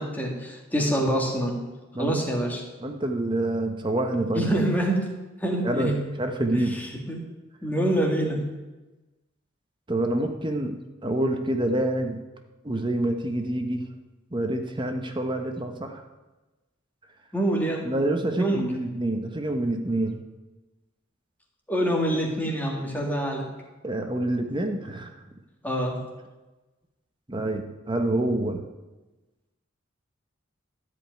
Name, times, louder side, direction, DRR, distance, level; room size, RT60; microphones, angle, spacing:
voice 1, 0.0-1.6 2.0-2.6 4.4-5.1 5.4-6.0 6.5-7.2 7.6-8.5 17.3-17.9 18.4-18.7 21.7-23.5 25.6-26.0, right 1 dB, 10° left, 0 dB, 2.0 m, -26 dB
voice 2, 2.8-4.5 5.6-5.9 6.2-6.8 9.9-10.7 11.0-12.2 12.6-13.8 14.3-16.0 17.8-20.2 22.1-22.2 23.8-25.2 27.3-28.6, right 1 dB, 25° right, 5 dB, 1.0 m, -27 dB
14.0 x 5.3 x 9.3 m, 1.1 s
head